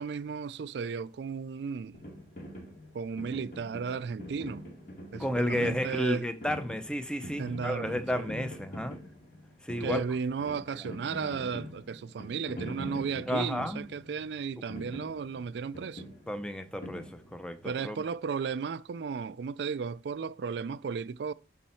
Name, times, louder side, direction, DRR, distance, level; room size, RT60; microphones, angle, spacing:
voice 1, 0.0-2.0 2.9-4.7 5.1-6.3 7.4-8.3 9.8-16.1 17.6-21.3, right 5 dB, 75° right, 0.4 m, -34 dB
sound 1, 1.9-17.7, equal, 55° left, 2.4 m, -44 dB
voice 2, 5.2-9.0 9.6-10.0 10.7-10.8 13.3-13.9 16.3-18.0, equal, 5° left, 0.6 m, -32 dB
11.5 x 4.2 x 4.3 m
head